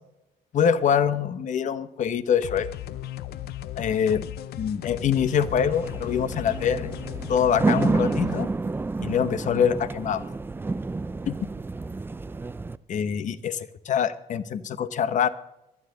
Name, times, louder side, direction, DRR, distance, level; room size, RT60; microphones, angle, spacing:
voice 1, 0.5-2.7 3.8-4.2 4.6-6.9 7.3-8.5 9.0-10.2 11.3-11.4 12.9-15.3, left 8 dB, 45° left, 14 dB, 0.9 m, -24 dB
sound 1, 2.4-8.4, left 12 dB, 70° left, 0.7 m, -36 dB
sound 2, 5.3-12.8, right 3 dB, 15° right, 0.4 m, -29 dB
23.5 x 9.8 x 3.9 m, 0.88 s
cardioid pair, 110°, 17 cm